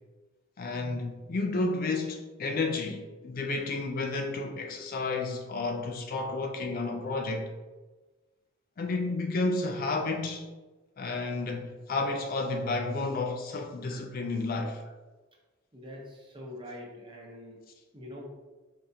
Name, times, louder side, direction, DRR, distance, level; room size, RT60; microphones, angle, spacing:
voice 1, 0.6-7.5 8.8-10.5 11.0-14.8, left 3 dB, 45° left, 0.4 m, -31 dB
voice 2, 15.7-17.6 17.9-18.3, left 1 dB, 25° right, 0.9 m, -44 dB
4.8 x 3.4 x 2.7 m
head